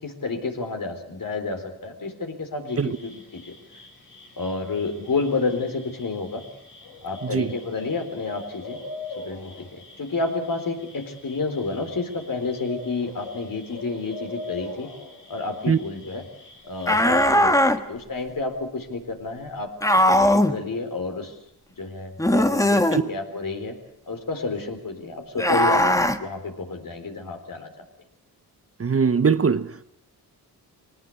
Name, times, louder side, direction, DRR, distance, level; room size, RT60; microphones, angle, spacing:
voice 1, 0.0-3.5 4.4-6.4 7.0-8.8 9.2-14.9 15.3-16.2 16.6-21.3 21.8-23.7 24.1-27.7, left 3 dB, 55° left, 4.1 m, -30 dB
sound 1, 2.7-17.3, left 2 dB, 90° left, 6.7 m, -42 dB
sound 2, 16.9-17.8 19.8-20.6 22.2-23.0 25.4-26.2, left 1 dB, 10° left, 1.4 m, -19 dB
voice 2, 28.8-29.8, right 6 dB, 35° right, 0.8 m, -21 dB
22.5 x 19.0 x 8.5 m
cardioid pair, 70°, 40 cm